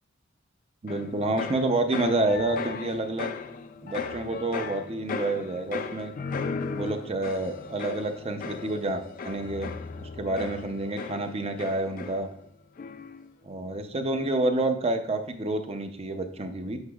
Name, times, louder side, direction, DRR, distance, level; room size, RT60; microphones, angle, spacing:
voice 1, 0.8-3.3 3.8-6.1 6.7-12.3 13.4-16.8, right 2 dB, 30° right, 6 dB, 0.6 m, -29 dB
sound 1, 0.9-12.5 12.8-13.3, left 5 dB, 45° left, 0.4 m, -37 dB
8.0 x 5.8 x 2.3 m, 0.68 s
head